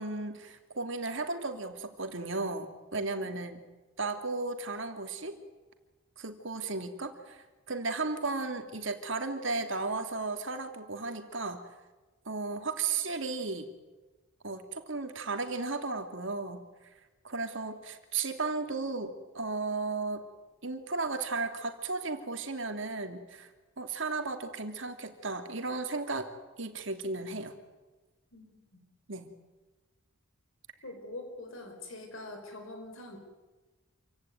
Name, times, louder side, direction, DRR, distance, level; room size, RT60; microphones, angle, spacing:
voice 1, 0.0-3.6 4.0-5.4 6.2-11.7 12.3-13.7 14.4-16.7 17.2-20.2 20.6-23.5 23.8-26.3 26.6-27.5 29.1-29.3, right 3 dB, 60° right, 6 dB, 2.7 m, -35 dB
voice 2, 28.3-28.8 30.8-33.2, left 2 dB, 70° left, 4 dB, 4.8 m, -44 dB
27.5 x 16.5 x 9.4 m, 1.2 s
head